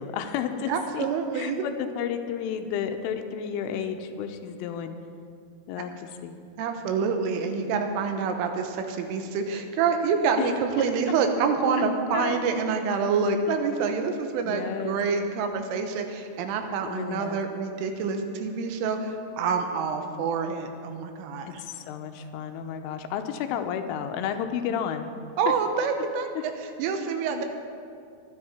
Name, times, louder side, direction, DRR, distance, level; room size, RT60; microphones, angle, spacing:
voice 1, 0.0-1.1 1.3-5.0 5.7-6.4 12.1-12.4 14.4-15.0 16.9-17.4 21.5-25.1 27.3-27.5, left 8 dB, 90° left, 7 dB, 3.2 m, -32 dB
voice 2, 0.7-1.7 6.6-21.6 25.4-27.5, right 5 dB, 85° right, 5 dB, 3.6 m, -27 dB
23.5 x 10.0 x 4.3 m, 2.4 s
omnidirectional pair, 5.7 m